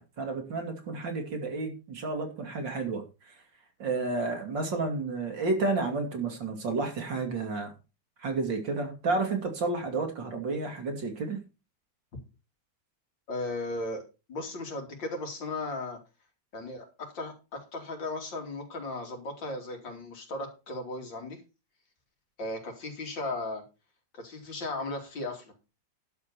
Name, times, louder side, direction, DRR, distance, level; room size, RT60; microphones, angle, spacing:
voice 1, 0.0-3.3 3.8-7.7 8.2-11.4, right 3 dB, 80° right, 5 dB, 3.3 m, -31 dB
voice 2, 13.3-14.0 14.3-16.0 16.5-21.4 22.4-23.6 24.1-25.5, left 2 dB, 85° left, 3 dB, 3.6 m, -36 dB
11.5 x 4.9 x 7.0 m, 0.29 s
omnidirectional pair, 2.0 m